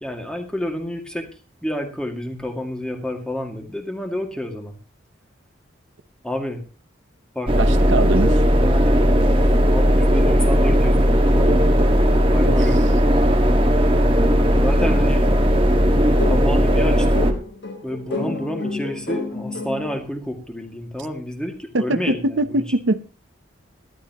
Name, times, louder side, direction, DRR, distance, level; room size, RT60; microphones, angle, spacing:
voice 1, 0.0-1.3 1.6-4.8 6.2-6.6 7.3-7.5 9.7-11.7 12.3-13.0 14.6-15.3 16.3-17.2 17.8-22.6, left 1 dB, 5° left, 4 dB, 2.1 m, -29 dB
sound 1, 7.5-17.3, equal, 25° right, 1.7 m, -16 dB
voice 2, 7.6-8.3 12.5-12.6 21.7-23.0, right 2 dB, 70° right, 12 dB, 0.8 m, -22 dB
sound 2, 14.5-20.0, left 3 dB, 70° left, 4.3 m, -31 dB
19.0 x 13.0 x 3.0 m, 0.33 s
head